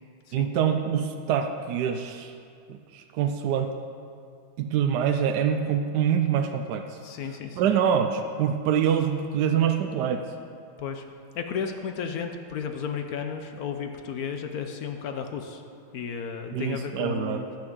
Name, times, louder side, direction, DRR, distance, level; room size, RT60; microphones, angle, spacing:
voice 1, 0.3-2.3 2.7-3.7 4.6-7.0 7.6-10.2 16.5-17.4, right 8 dB, 75° right, 6 dB, 1.0 m, -25 dB
voice 2, 7.0-7.7 10.8-11.0 11.3-15.6 15.9-17.4, left 6 dB, 70° left, 5 dB, 0.9 m, -33 dB
10.5 x 6.0 x 7.7 m, 2.3 s
omnidirectional pair, 2.3 m